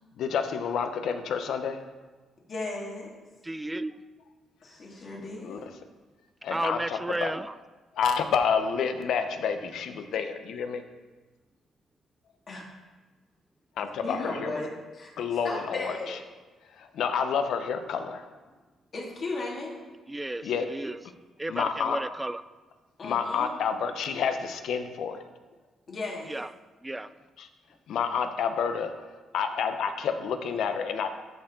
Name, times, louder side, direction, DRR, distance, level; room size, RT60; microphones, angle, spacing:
voice 1, 0.2-1.8 5.4-5.7 6.4-7.3 7.9-10.8 13.8-14.5 15.2-16.2 16.7-18.3 20.4-20.7 21.5-22.0 23.0-25.2 27.4-27.5 27.9-28.9 29.3-31.1, left 6 dB, 75° left, 0.7 m, -29 dB
voice 2, 2.5-3.2 4.6-5.6 12.5-12.7 14.0-15.1 15.4-16.1 18.9-19.8 23.0-23.6 25.9-26.3, left 2 dB, 45° left, 2.2 m, -35 dB
voice 3, 3.4-3.9 6.5-7.5 20.1-21.0 21.4-22.4 26.3-26.5 26.8-27.1, right 1 dB, 10° right, 0.3 m, -33 dB
13.5 x 4.5 x 3.8 m
cardioid pair, 90°, 0 cm